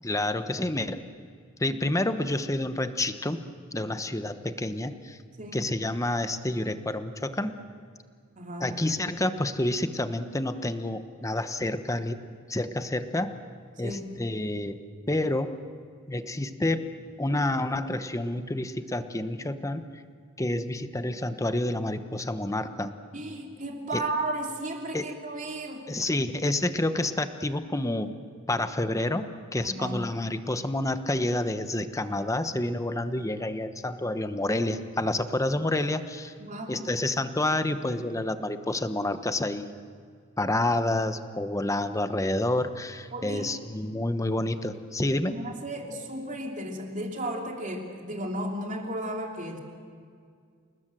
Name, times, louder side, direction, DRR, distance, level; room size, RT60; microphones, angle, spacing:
voice 1, 0.0-1.0 1.6-3.4 3.7-5.2 5.5-7.6 8.6-13.3 13.8-14.8 15.1-15.5 16.1-16.9 17.2-19.8 20.4-22.9 23.9-24.0 24.9-25.1 25.9-28.1 28.5-36.3 36.7-39.7 40.4-45.3, left 1 dB, 15° left, 10 dB, 1.0 m, -29 dB
voice 2, 8.4-8.7 13.8-14.1 23.1-25.9 29.6-30.0 36.4-36.8 43.1-43.5 45.3-49.6, right 1 dB, 35° right, 2 dB, 3.0 m, -34 dB
28.5 x 20.0 x 7.7 m, 2.1 s
head